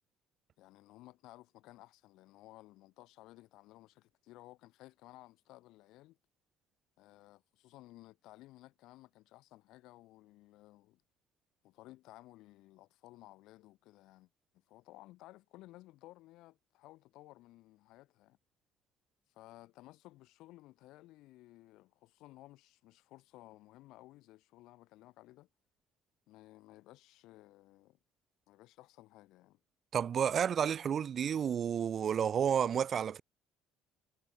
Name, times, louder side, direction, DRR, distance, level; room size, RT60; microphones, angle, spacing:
voice 1, 0.6-6.2 7.0-11.0 11.6-18.4 19.3-25.5 26.3-28.0 28.5-29.6, left 17 dB, 65° left, 1.9 m, -57 dB
voice 2, 29.9-33.2, right 8 dB, 30° right, 0.5 m, -31 dB
cardioid pair, 180°, 0 cm